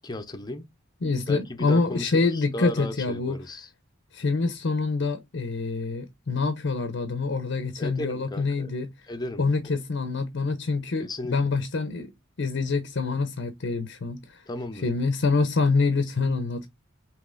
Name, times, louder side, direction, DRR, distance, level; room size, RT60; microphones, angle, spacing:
voice 1, 0.0-0.7 1.3-3.7 7.8-8.7 9.1-9.8 11.0-11.5 14.5-14.8, left 2 dB, 20° left, 0.6 m, -35 dB
voice 2, 1.0-3.4 4.1-8.9 9.4-12.1 12.4-14.4 14.8-16.7, left 3 dB, 60° left, 0.6 m, -26 dB
4.9 x 3.0 x 2.4 m
head